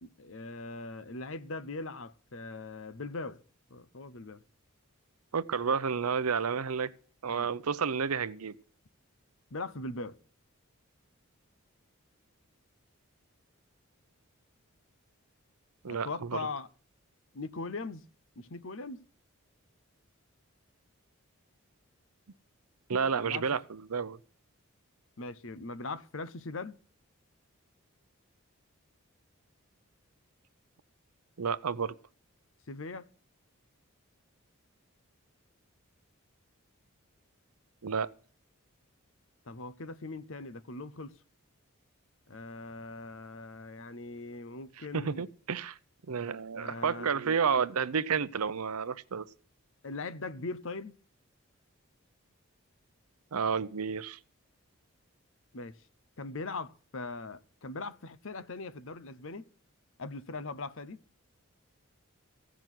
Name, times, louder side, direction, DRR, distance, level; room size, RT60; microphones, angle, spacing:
voice 1, 0.0-3.4 3.7-4.4 7.4-7.5 9.5-10.2 15.9-16.7 17.3-18.1 18.4-19.0 23.2-23.4 25.2-26.8 32.7-33.1 39.5-41.1 42.3-45.3 46.6-47.4 49.8-51.0 55.5-55.7 56.2-59.4 60.0-61.0, left 3 dB, 65° left, 0.8 m, -40 dB
voice 2, 5.3-6.9 7.2-8.6 15.8-16.5 22.9-24.2 31.4-32.0 37.8-38.1 44.8-45.8 46.1-49.3 53.3-54.2, right 6 dB, 90° right, 0.7 m, -31 dB
16.0 x 6.2 x 9.1 m
head